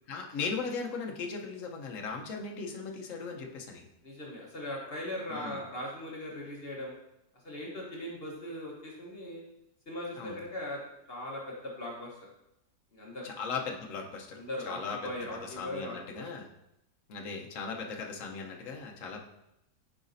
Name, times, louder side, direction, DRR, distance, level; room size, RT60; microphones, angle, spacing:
voice 1, 0.1-3.8 5.3-5.6 10.1-10.4 13.2-15.1 15.4-16.5 17.1-19.2, left 5 dB, 60° left, 1 dB, 1.2 m, -38 dB
voice 2, 4.0-6.9 7.4-9.4 9.9-10.8 11.1-12.1 12.9-13.3 14.3-16.3, left 1 dB, 40° left, -2 dB, 1.3 m, -39 dB
8.9 x 5.0 x 2.6 m, 0.86 s
omnidirectional pair, 1.6 m